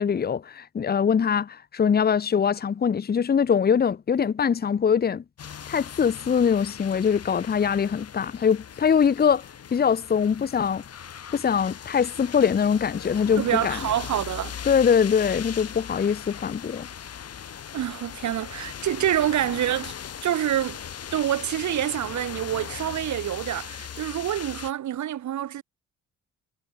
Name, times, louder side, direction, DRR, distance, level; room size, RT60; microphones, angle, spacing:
voice 1, 0.0-5.2 5.7-9.4 9.7-10.8 11.3-13.8 14.7-16.9, left 7 dB, 30° left, 0.9 m, -23 dB
sound 1, 5.4-24.7, left 8 dB, 55° left, 4.8 m, -39 dB
voice 2, 13.4-14.5 17.7-20.0 20.2-20.8 21.1-25.6, right 11 dB, 70° right, 3.7 m, -27 dB
cardioid pair, 90°, 30 cm